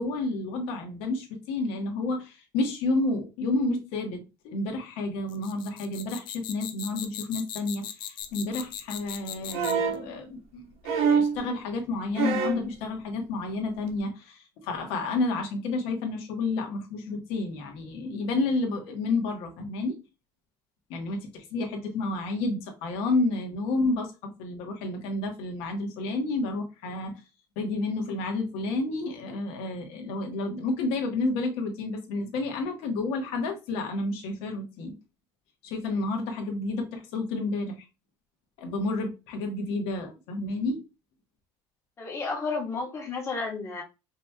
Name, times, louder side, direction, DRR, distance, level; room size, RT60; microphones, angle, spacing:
voice 1, 0.0-20.0 20.9-27.1 27.6-34.9 35.6-37.9 38.6-40.8, left 2 dB, 80° left, 1.2 m, -30 dB
sound 1, 5.3-9.9, left 10 dB, 55° left, 0.5 m, -38 dB
sound 2, 9.5-10.1 10.8-11.4 12.1-12.7 13.9-14.0, right 5 dB, 80° right, 1.1 m, -25 dB
voice 2, 42.0-43.8, left 4 dB, 30° left, 1.3 m, -32 dB
5.1 x 2.9 x 2.2 m
cardioid pair, 150°, 10 cm